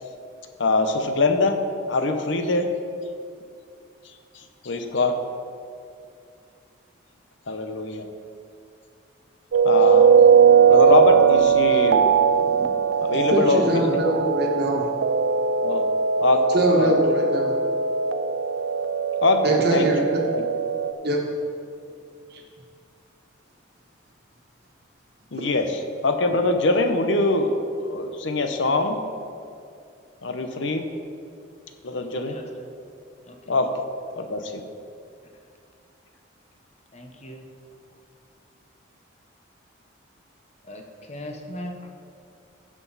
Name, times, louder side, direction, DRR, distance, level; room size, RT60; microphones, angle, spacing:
voice 1, 0.6-1.6 1.9-2.7 4.6-5.1 7.5-8.0 9.6-10.2 10.7-12.0 13.0-13.6 15.6-15.8 16.2-16.4 16.7-16.9 19.2-19.9 20.3-20.4 25.3-25.7 26.0-27.5 27.8-29.0 30.2-30.8 31.8-32.4 33.5-33.7 34.2-34.6, left 3 dB, 65° left, 6 dB, 0.8 m, -23 dB
sound 1, 9.5-20.9, right 6 dB, 70° right, 0.4 m, -19 dB
voice 2, 13.1-14.9 16.5-17.5 19.4-20.2 21.0-21.2 22.3-22.4 25.3-25.4, right 1 dB, 50° right, 0 dB, 1.5 m, -23 dB
voice 3, 32.1-32.5 33.3-33.6 36.9-37.4 40.7-41.9, left 1 dB, 35° left, 3 dB, 0.9 m, -39 dB
15.0 x 6.1 x 4.0 m, 2.4 s
head